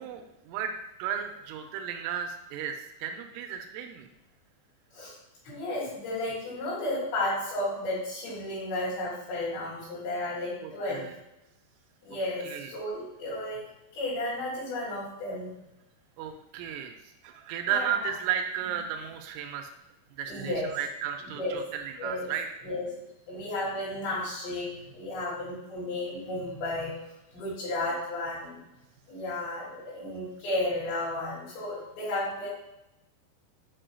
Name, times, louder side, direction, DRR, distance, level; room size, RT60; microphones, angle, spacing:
voice 1, 0.0-4.1 10.6-11.2 12.4-12.7 16.2-17.0 17.2-19.7 20.2-22.5, right 8 dB, 90° right, 5 dB, 3.1 m, -34 dB
voice 2, 5.4-11.1 12.0-13.6 13.9-15.5 17.6-17.9 20.3-20.7 21.3-21.6 22.0-22.3 22.6-22.9 23.3-26.9 27.3-28.6 29.1-32.5, left 1 dB, 65° left, -12 dB, 4.4 m, -33 dB
8.8 x 5.0 x 2.3 m, 0.92 s
omnidirectional pair, 5.7 m